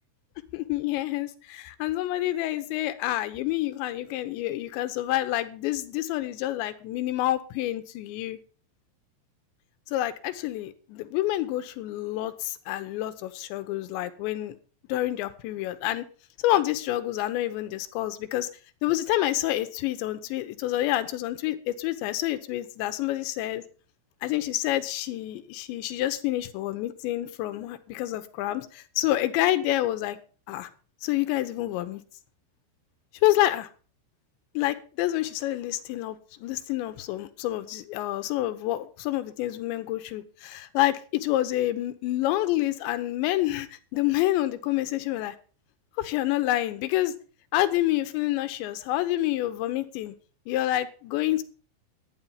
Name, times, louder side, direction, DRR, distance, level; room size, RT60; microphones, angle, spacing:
voice 1, 0.5-8.4 9.9-14.6 14.9-16.0 16.4-18.5 18.8-23.6 24.2-30.2 30.5-30.7 31.0-32.0 33.2-33.7 34.5-45.4 46.0-47.1 47.5-50.1 50.5-51.4, left 15 dB, 75° left, 3.0 m, -28 dB
12.0 x 9.9 x 5.7 m
omnidirectional pair, 5.7 m